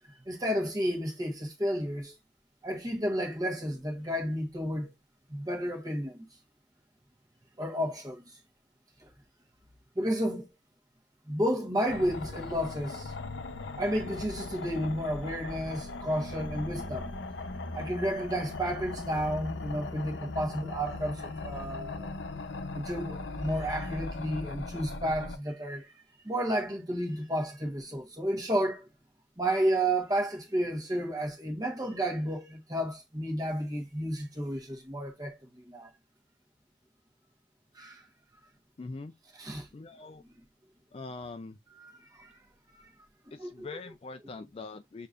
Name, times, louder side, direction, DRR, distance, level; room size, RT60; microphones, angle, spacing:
voice 1, 0.3-2.1 2.6-4.9 5.3-6.2 7.6-8.3 9.9-10.5 11.3-13.1 13.8-17.2 17.7-22.1 22.7-25.9 26.2-28.8 29.4-35.3 35.7-35.9 37.7-38.0 39.3-39.7 41.8-42.3 42.7-42.8 43.4-43.7, equal, 20° right, 1.2 m, -32 dB
sound 1, 11.9-25.4, left 3 dB, 85° left, 0.7 m, -39 dB
voice 2, 38.8-39.1 39.7-40.2 40.9-41.6 43.3-45.1, left 3 dB, 30° left, 0.3 m, -42 dB
6.6 x 2.7 x 2.4 m
head